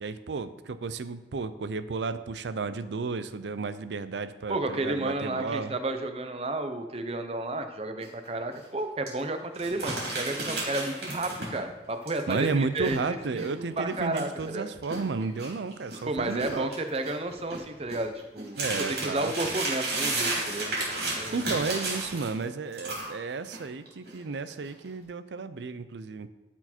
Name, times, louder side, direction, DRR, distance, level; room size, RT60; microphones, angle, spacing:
voice 1, 0.0-5.7 12.3-16.7 18.6-19.3 21.1-26.3, right 4 dB, 85° right, 12 dB, 0.5 m, -33 dB
voice 2, 4.5-13.5 13.8-14.7 16.1-20.7 21.1-21.6, right 2 dB, 35° right, 7 dB, 0.6 m, -32 dB
sound 1, 8.0-8.3 8.5-8.6 9.1-9.2 9.5-11.7 12.1-16.0 16.3-22.4 22.7-23.6 23.9-24.2 24.6-24.9, right 2 dB, 60° right, 3.2 m, -33 dB
12.0 x 4.5 x 4.4 m, 1.1 s
head